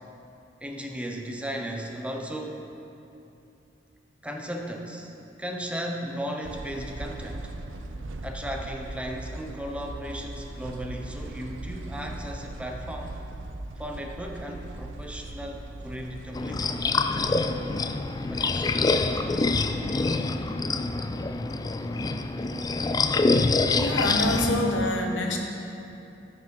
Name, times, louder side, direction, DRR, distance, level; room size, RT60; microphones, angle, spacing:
voice 1, 0.6-2.7 4.2-5.1 5.4-7.5 8.2-13.2 13.8-16.8 18.3-18.8, equal, 5° right, 1 dB, 0.7 m, -36 dB
sound 1, 6.4-19.9, right 2 dB, 90° right, 0.6 m, -40 dB
sound 2, 16.3-24.8, left 3 dB, 20° left, 0.3 m, -26 dB
voice 2, 22.5-22.9 23.8-25.4, left 1 dB, 90° left, 2 dB, 1.1 m, -26 dB
13.5 x 6.0 x 4.6 m, 2.7 s
head